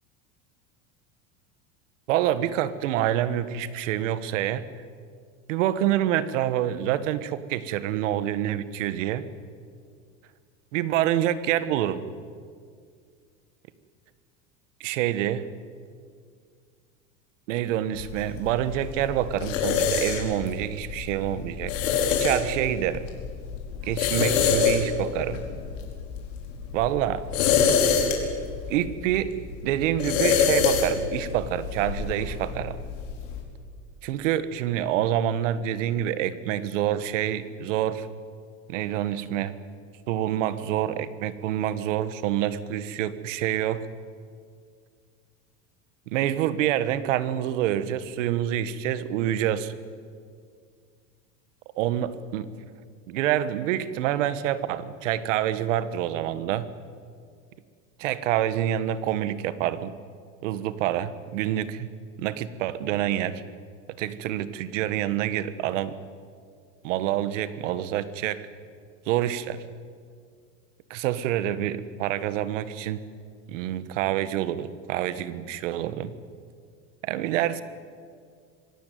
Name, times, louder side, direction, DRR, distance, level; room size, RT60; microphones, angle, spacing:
voice 1, 2.1-4.6 5.5-9.3 10.7-12.0 14.8-15.4 17.5-21.7 22.2-23.1 23.8-25.4 26.7-27.2 28.7-29.3 29.6-32.8 34.0-38.1 38.7-39.5 40.1-43.9 46.1-49.7 51.8-52.5 53.1-56.7 58.0-59.9 60.4-61.9 62.2-63.4 64.0-65.9 66.8-68.4 69.0-69.6 70.9-73.0 73.5-76.1 77.0-77.6, right 11 dB, 80° right, 14 dB, 1.6 m, -27 dB
sound 1, 17.9-33.4, left 6 dB, 80° left, 5.0 m, -27 dB
26.0 x 17.5 x 9.4 m, 2.1 s
supercardioid pair, 170°, 37 cm